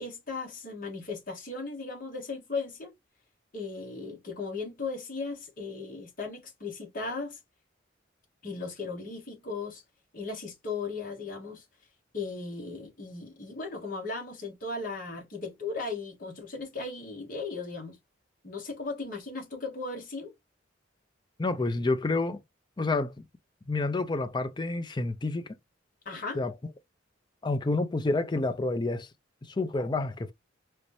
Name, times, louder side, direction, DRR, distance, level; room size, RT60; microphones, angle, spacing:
voice 1, 0.0-2.9 3.5-7.4 8.4-9.8 10.1-11.6 12.1-18.0 18.4-20.3 26.0-26.4, left 3 dB, 45° left, 1.2 m, -37 dB
voice 2, 21.4-22.4 22.8-23.1 23.7-25.5 26.3-26.5 27.4-29.1 29.4-30.3, left 2 dB, 25° left, 0.4 m, -29 dB
3.1 x 2.7 x 3.1 m
head